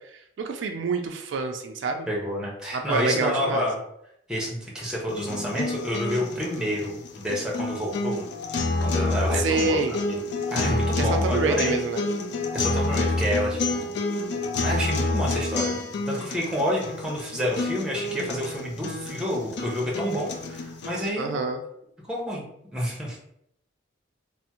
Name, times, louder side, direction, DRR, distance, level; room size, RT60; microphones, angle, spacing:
voice 1, 0.1-2.1 2.7-3.6 9.3-10.0 11.0-12.0 21.2-21.6, right 4 dB, 70° right, 5 dB, 0.3 m, -27 dB
voice 2, 2.1-3.8 4.3-8.2 8.8-9.8 10.1-10.2 10.5-11.8 12.5-14.0 14.6-15.8 16.1-21.4 22.1-23.2, equal, 5° right, -4 dB, 0.6 m, -29 dB
sound 1, 5.1-21.1, left 2 dB, 60° left, 0.4 m, -28 dB
3.4 x 2.0 x 2.8 m, 0.75 s
head